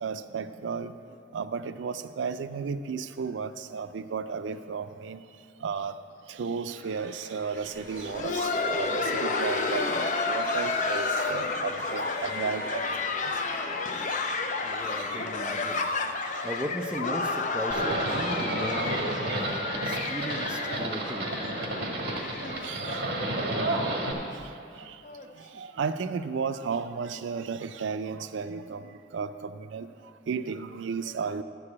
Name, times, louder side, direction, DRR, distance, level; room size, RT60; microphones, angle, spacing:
voice 1, 0.0-0.9 1.3-5.2 5.6-5.9 6.3-9.8 10.3-12.8 14.1-14.2 15.0-15.3 22.6-23.0 24.1-24.3 25.6-28.8 29.1-29.9 30.3-31.4, right 5 dB, 85° right, 11 dB, 0.4 m, -33 dB
sound 1, 6.7-17.0, left 1 dB, 15° left, 1.0 m, -42 dB
Laughter, 7.7-23.4 23.7-23.8 24.4-24.5 25.0-25.3 26.3-26.4, left 3 dB, 40° left, 0.6 m, -31 dB
voice 2, 14.6-15.8 16.2-21.3, equal, 5° right, 2 dB, 0.5 m, -37 dB
Livestock farm animals working animals, 17.7-24.1, right 1 dB, 55° right, 1.6 m, -31 dB
12.0 x 4.8 x 8.5 m, 2.5 s
head